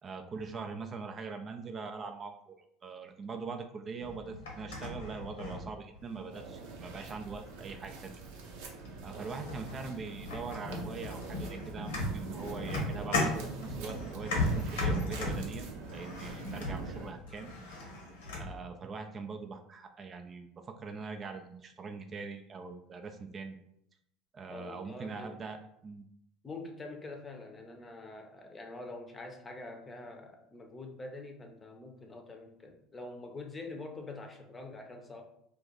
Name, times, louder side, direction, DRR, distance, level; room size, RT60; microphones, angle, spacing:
voice 1, 0.0-8.1 9.0-15.7 15.9-17.5 18.4-23.6 24.3-26.0, right 4 dB, 35° right, 5 dB, 0.4 m, -42 dB
sound 1, 4.0-6.2 6.7-7.2 8.2-8.3 8.8-9.1 9.4-18.6, left 1 dB, 80° left, 0.9 m, -36 dB
sound 2, 6.3-17.1, right 3 dB, 70° right, 0.7 m, -44 dB
voice 2, 24.5-25.4 26.4-35.2, left 2 dB, 25° left, 3 dB, 0.7 m, -45 dB
2.5 x 2.4 x 3.9 m, 0.73 s
hypercardioid pair, 75°, 0 cm